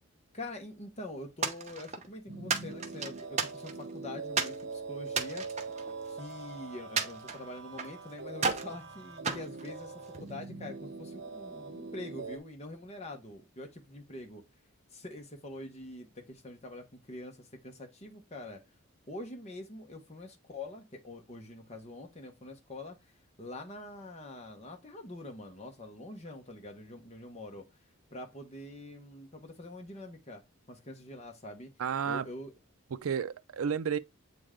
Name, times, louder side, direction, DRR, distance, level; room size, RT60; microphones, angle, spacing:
voice 1, 0.3-5.5 6.1-9.9 10.2-14.4 14.9-18.6 19.1-23.1 23.4-27.7 28.1-30.4 30.7-31.7 32.0-32.5, left 2 dB, 30° left, 1.0 m, -45 dB
sound 1, 1.4-2.1 2.5-3.9 4.4-4.6 5.1-6.4 7.0-8.0 8.4-8.7 9.2-10.3, right 5 dB, 30° right, 0.8 m, -34 dB
sound 2, 2.3-12.4, right 4 dB, 55° right, 1.0 m, -43 dB
voice 2, 31.8-32.3 32.9-34.0, right 7 dB, 80° right, 0.4 m, -31 dB
7.8 x 3.3 x 3.7 m
head